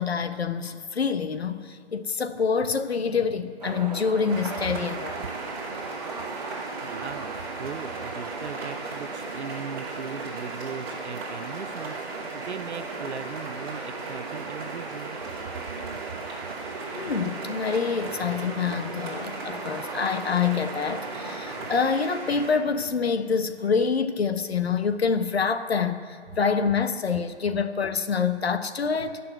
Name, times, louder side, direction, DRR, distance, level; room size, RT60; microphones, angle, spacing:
voice 1, 0.0-5.2 16.9-29.2, left 5 dB, 65° left, 9 dB, 1.1 m, -26 dB
sound 1, 3.6-21.9, right 4 dB, 35° right, 0.8 m, -38 dB
sound 2, 4.3-22.5, right 2 dB, 20° right, 2.5 m, -38 dB
voice 2, 6.8-15.2 15.4-15.5, right 6 dB, 75° right, 10 dB, 0.8 m, -39 dB
16.5 x 6.8 x 9.1 m, 2.1 s
hypercardioid pair, 170°, 34 cm